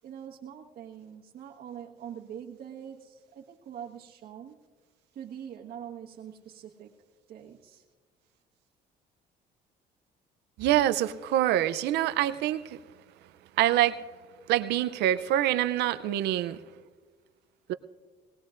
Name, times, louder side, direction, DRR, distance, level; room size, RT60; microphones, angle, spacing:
voice 1, 0.0-4.6 5.1-6.9 7.3-7.8, right 9 dB, 65° right, -2 dB, 1.4 m, -44 dB
voice 2, 10.6-12.8 13.6-14.0 14.5-16.6 17.7-17.8, right 13 dB, 80° right, 12 dB, 0.6 m, -25 dB
21.5 x 18.5 x 2.5 m, 1.4 s
cardioid pair, 110°, 17 cm